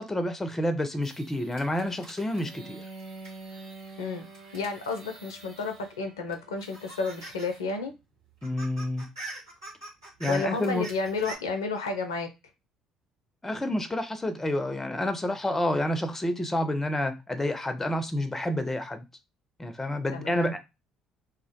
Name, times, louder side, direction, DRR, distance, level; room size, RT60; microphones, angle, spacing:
voice 1, 0.0-2.8 8.4-9.1 10.2-10.9 13.4-19.0 19.6-20.6, left 1 dB, 15° left, 0.4 m, -29 dB
sound 1, 1.0-6.0 6.3-7.6 7.9-8.0 8.3-11.4, right 2 dB, 80° right, 1.0 m, -45 dB
Bowed string instrument, 2.4-7.4, right 3 dB, 60° right, 0.5 m, -47 dB
voice 2, 4.5-7.9 10.3-12.3 20.1-20.6, left 4 dB, 80° left, 0.4 m, -31 dB
2.4 x 2.1 x 2.6 m
figure-of-eight pair, 50°, 2 cm